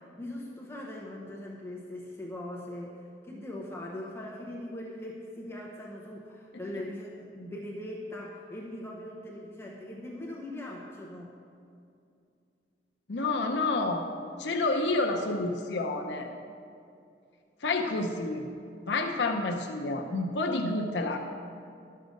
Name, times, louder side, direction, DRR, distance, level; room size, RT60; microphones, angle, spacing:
voice 1, 0.0-11.3, left 1 dB, 15° left, -3 dB, 0.9 m, -41 dB
voice 2, 13.1-14.1 14.4-16.4 17.6-18.5 18.8-21.2, left 2 dB, 75° left, 3 dB, 0.6 m, -29 dB
12.0 x 6.6 x 5.2 m, 2.4 s
head